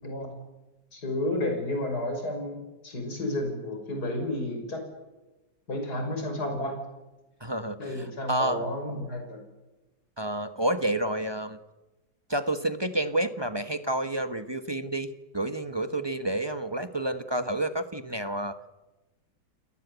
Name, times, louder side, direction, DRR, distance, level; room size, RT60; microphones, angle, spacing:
voice 1, 0.9-4.8 5.7-6.7 7.8-9.4, left 1 dB, 50° left, 4 dB, 6.5 m, -31 dB
voice 2, 7.4-8.7 10.2-11.6 12.3-18.8, right 1 dB, 15° right, 10 dB, 1.0 m, -30 dB
30.0 x 18.5 x 8.2 m, 1.1 s
omnidirectional pair, 2.1 m